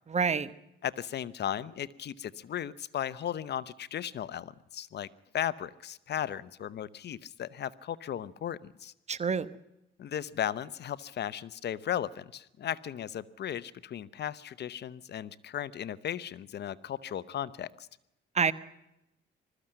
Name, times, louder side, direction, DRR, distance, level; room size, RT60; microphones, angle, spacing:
voice 1, 0.1-0.5 9.1-9.5 18.3-18.5, right 5 dB, 35° right, 16 dB, 1.1 m, -27 dB
voice 2, 0.8-5.1 5.3-8.9 10.0-17.9, left 10 dB, 60° left, 18 dB, 0.8 m, -36 dB
21.0 x 14.0 x 8.8 m, 0.87 s
cardioid pair, 90°, 20 cm